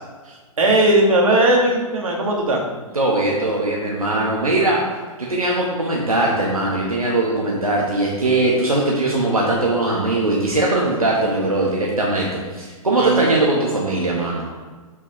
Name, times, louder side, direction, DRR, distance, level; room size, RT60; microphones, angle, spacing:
voice 1, 0.3-2.6 13.0-13.3, right 1 dB, 70° right, 0 dB, 1.5 m, -18 dB
voice 2, 2.9-4.8 5.2-14.4, right 2 dB, 90° right, -3 dB, 1.2 m, -20 dB
8.6 x 4.8 x 3.2 m, 1.4 s
figure-of-eight pair, 110°, 18 cm